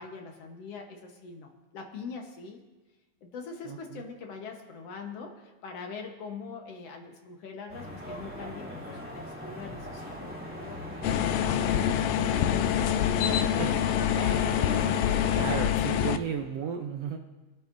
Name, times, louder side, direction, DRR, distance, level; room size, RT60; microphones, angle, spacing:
voice 1, 0.0-2.6 3.2-14.5, left 4 dB, 60° left, 3 dB, 2.0 m, -43 dB
voice 2, 3.7-4.0 13.6-13.7 15.4-17.2, right 7 dB, 75° right, 3 dB, 1.5 m, -33 dB
sound 1, 7.7-15.4, left 1 dB, 5° right, 1.9 m, -39 dB
sound 2, 11.0-16.2, left 10 dB, 80° left, 1.6 m, -26 dB
26.5 x 9.1 x 2.6 m, 1.2 s
omnidirectional pair, 3.4 m